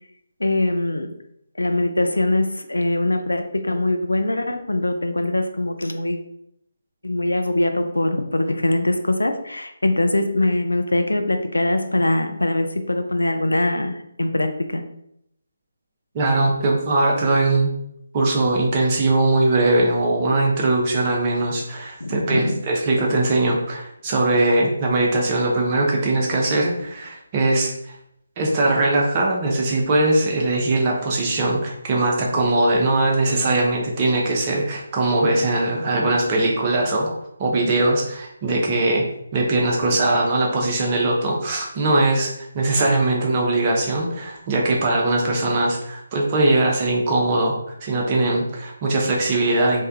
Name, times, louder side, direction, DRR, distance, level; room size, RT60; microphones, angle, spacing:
voice 1, 0.4-1.1 1.6-6.2 7.0-14.8 22.0-22.6, left 1 dB, 70° left, 7 dB, 0.4 m, -22 dB
voice 2, 16.1-17.7 18.1-28.0 28.4-39.0 39.3-47.5 47.8-49.9, right 2 dB, 25° right, -1 dB, 0.6 m, -20 dB
3.2 x 2.2 x 2.6 m, 0.76 s
figure-of-eight pair, 150°, 0 cm